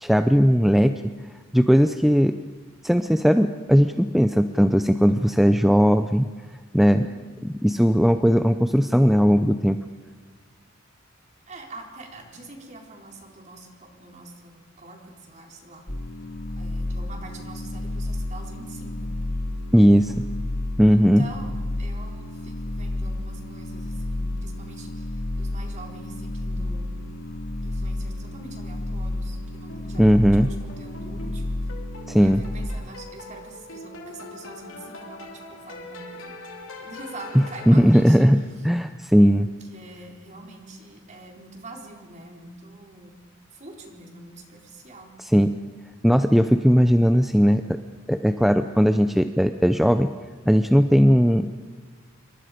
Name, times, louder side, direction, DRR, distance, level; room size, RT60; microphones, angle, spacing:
voice 1, 0.0-0.9 1.5-2.3 2.8-6.3 6.7-7.1 7.4-9.8 19.7-20.1 20.8-21.2 30.0-30.5 32.1-32.4 37.7-38.4 38.6-39.5 45.3-45.5 46.0-47.6 48.1-50.1 50.5-51.5, equal, ahead, 8 dB, 0.6 m, -18 dB
voice 2, 6.9-7.9 11.5-15.8 16.6-19.1 20.9-26.9 27.6-31.7 32.2-36.4 36.8-38.3 38.6-38.7 39.4-43.2 43.5-45.1, right 2 dB, 35° right, 1 dB, 4.2 m, -44 dB
sound 1, 15.9-32.7, left 1 dB, 50° left, 2.3 m, -31 dB
sound 2, 29.7-38.6, left 2 dB, 75° left, 3.1 m, -43 dB
28.0 x 23.5 x 5.1 m, 1.5 s
head